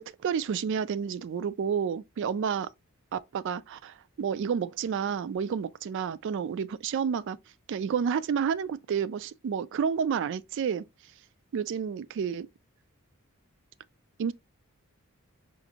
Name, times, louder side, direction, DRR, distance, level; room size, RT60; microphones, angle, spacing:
voice 1, 0.0-2.7 3.1-7.4 7.7-10.8 11.5-12.5 14.2-14.3, right 7 dB, 55° right, 0.3 m, -30 dB
5.0 x 2.6 x 2.7 m
head